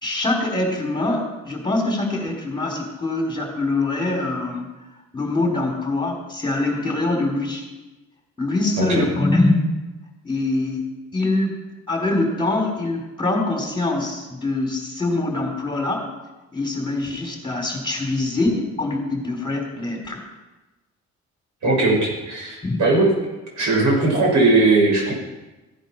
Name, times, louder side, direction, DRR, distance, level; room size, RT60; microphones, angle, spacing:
voice 1, 0.0-4.7 5.1-7.7 8.4-9.7 10.2-10.8 11.1-11.6 11.9-16.1 16.5-20.2 22.6-22.8, left 2 dB, 15° left, 1 dB, 3.6 m, -23 dB
voice 2, 21.6-23.1 23.6-25.1, right 2 dB, 70° right, -2 dB, 6.0 m, -18 dB
15.5 x 9.2 x 5.9 m, 1.1 s
cardioid pair, 90°, 30 cm